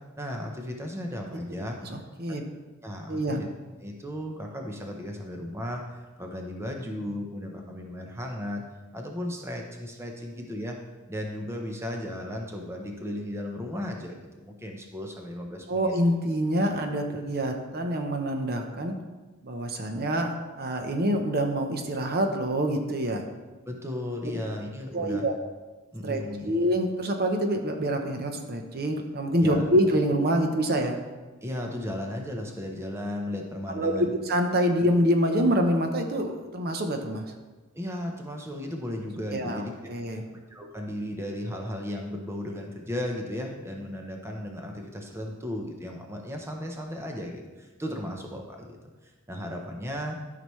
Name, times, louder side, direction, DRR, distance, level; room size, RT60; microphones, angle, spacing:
voice 1, 0.2-1.8 2.8-3.5 3.8-8.6 8.9-10.8 11.1-15.9 17.1-17.2 23.7-25.2 25.9-26.5 29.4-29.7 31.4-34.1 37.7-40.2 40.5-48.8 49.0-50.2, left 1 dB, 10° right, 1 dB, 0.8 m, -35 dB
voice 2, 1.8-2.4 3.1-3.4 15.7-18.9 19.4-20.3 20.6-23.2 24.2-24.4 24.9-25.3 26.0-31.0 33.7-37.2 39.3-40.2, equal, 45° right, 4 dB, 0.8 m, -26 dB
12.5 x 5.9 x 3.1 m, 1.2 s
head